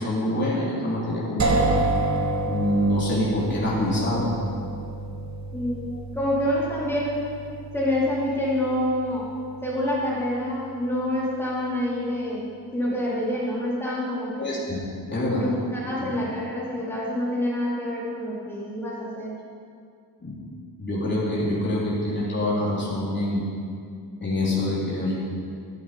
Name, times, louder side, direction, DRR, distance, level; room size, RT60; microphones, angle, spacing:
voice 1, 0.0-1.7 2.4-4.3 14.4-14.8 15.1-15.5 16.0-16.1 20.2-20.4 20.8-23.4 24.2-25.2, left 1 dB, 25° left, -8 dB, 3.6 m, -25 dB
sound 1, 1.4-11.2, right 2 dB, 45° right, 1.5 m, -29 dB
voice 2, 5.5-5.9 6.1-7.3 7.7-9.3 9.6-12.5 12.7-14.5 15.4-19.3, left 1 dB, 5° left, -8 dB, 4.0 m, -27 dB
13.5 x 12.0 x 5.1 m, 2.3 s
wide cardioid pair, 155°, 40 cm